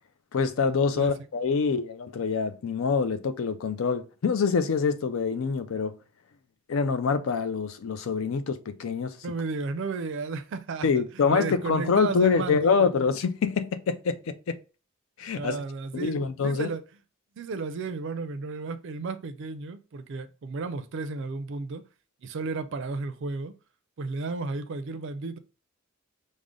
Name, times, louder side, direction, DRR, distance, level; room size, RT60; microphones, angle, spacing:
voice 1, 0.3-5.9 6.7-9.2 10.8-14.6 15.2-15.6 15.9-16.7, left 5 dB, 70° left, 0.4 m, -25 dB
voice 2, 9.2-12.9 15.4-16.8 17.4-21.8 22.2-23.5 24.0-25.4, right 4 dB, 60° right, 0.4 m, -33 dB
4.9 x 2.1 x 3.7 m
head